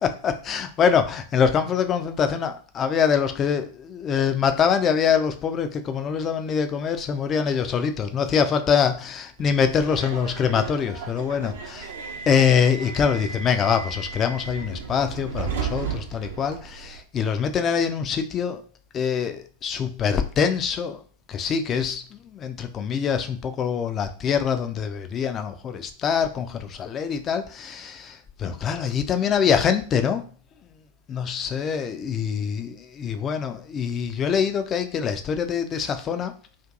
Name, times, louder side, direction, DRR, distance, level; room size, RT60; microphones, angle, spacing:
voice 1, 0.0-11.9 12.3-18.6 18.9-21.0 21.3-30.2 31.1-36.3, left 7 dB, 25° left, 0.3 m, -24 dB
Subway metro underground, 9.4-17.0, right 6 dB, 60° right, 0.5 m, -35 dB
2.5 x 2.5 x 2.4 m
figure-of-eight pair, 90°, 0 cm